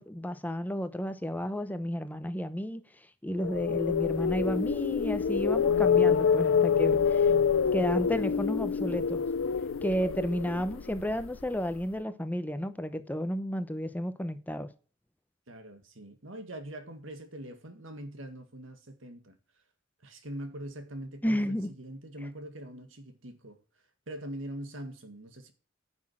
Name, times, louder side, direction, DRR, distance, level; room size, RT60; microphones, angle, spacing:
voice 1, 0.0-2.8 3.2-7.3 7.7-9.2 9.8-14.7 21.2-21.7, equal, 10° left, 0.8 m, -32 dB
sound 1, 3.4-11.5, left 6 dB, 90° left, 0.5 m, -26 dB
voice 2, 15.5-19.4 20.0-23.6 24.1-25.5, right 1 dB, 75° right, 1.9 m, -43 dB
10.5 x 6.3 x 6.2 m
head